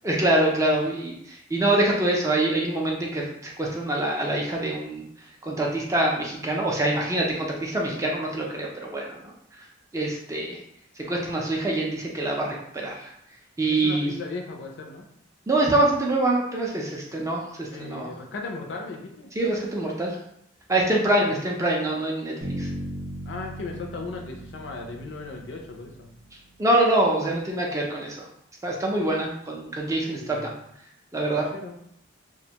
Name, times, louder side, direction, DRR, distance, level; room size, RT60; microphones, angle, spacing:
voice 1, 0.0-5.0 5.4-9.2 9.9-10.6 11.1-13.1 13.6-14.1 15.5-18.1 19.4-20.2 20.7-22.7 26.6-28.3 28.6-30.5 31.1-31.5, right 1 dB, 15° right, -1 dB, 0.3 m, -25 dB
voice 2, 13.7-15.1 17.7-19.3 21.2-21.3 23.3-26.1 30.0-30.5 31.3-31.8, left 3 dB, 65° left, 3 dB, 0.4 m, -37 dB
Bass guitar, 22.4-26.3, right 1 dB, 60° right, 0.6 m, -37 dB
2.5 x 2.1 x 2.8 m, 0.73 s
head